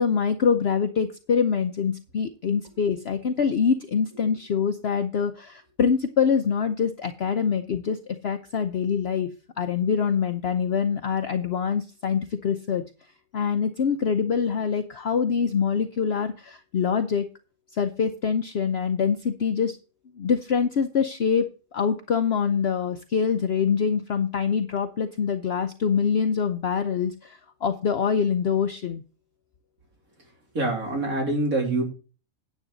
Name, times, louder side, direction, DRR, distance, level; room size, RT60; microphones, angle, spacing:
voice 1, 0.0-9.3 9.6-12.8 13.3-17.3 17.7-19.8 20.2-21.4 21.7-29.0, left 6 dB, 55° left, 7 dB, 0.9 m, -25 dB
voice 2, 30.6-31.8, right 2 dB, 80° right, 2 dB, 3.8 m, -25 dB
9.8 x 8.0 x 4.0 m, 0.34 s
omnidirectional pair, 1.4 m